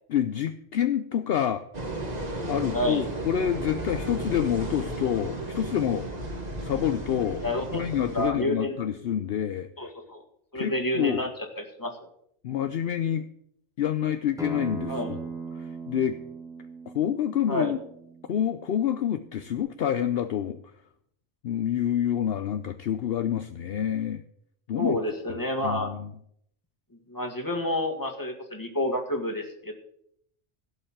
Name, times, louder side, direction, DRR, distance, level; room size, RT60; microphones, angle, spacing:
voice 1, 0.1-1.6 2.4-6.1 6.6-7.4 7.7-9.7 10.5-11.2 12.4-13.2 13.8-15.2 15.5-16.2 16.9-17.8 18.3-20.6 21.4-24.2 24.7-25.0 25.3-25.4 25.6-26.1, left 9 dB, 65° left, 9 dB, 0.8 m, -27 dB
sound 1, 1.7-8.3, right 1 dB, 35° right, 1.7 m, -34 dB
voice 2, 7.4-7.8 8.1-8.9 9.8-10.2 10.5-11.9 14.9-15.1 17.5-17.7 24.8-25.9 27.1-29.7, left 1 dB, 15° left, 3 dB, 1.8 m, -29 dB
Acoustic guitar, 14.4-19.6, right 5 dB, 5° right, 1.4 m, -40 dB
16.0 x 5.5 x 7.3 m, 0.71 s
omnidirectional pair, 1.2 m